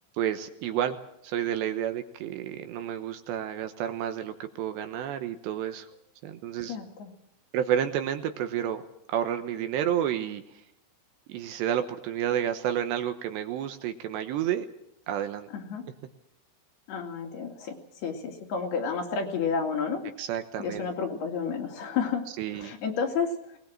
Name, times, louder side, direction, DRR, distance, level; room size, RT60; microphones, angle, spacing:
voice 1, 0.2-1.0 1.2-5.9 6.2-6.8 7.5-8.8 9.1-10.4 11.3-14.7 15.1-15.5 20.2-20.9 22.4-22.7, right 10 dB, 75° right, 8 dB, 3.0 m, -30 dB
voice 2, 6.7-7.1 15.5-15.8 16.9-20.1 20.6-22.2 22.5-23.3, left 6 dB, 60° left, 3 dB, 3.9 m, -31 dB
21.5 x 20.0 x 7.6 m, 0.79 s
omnidirectional pair, 5.5 m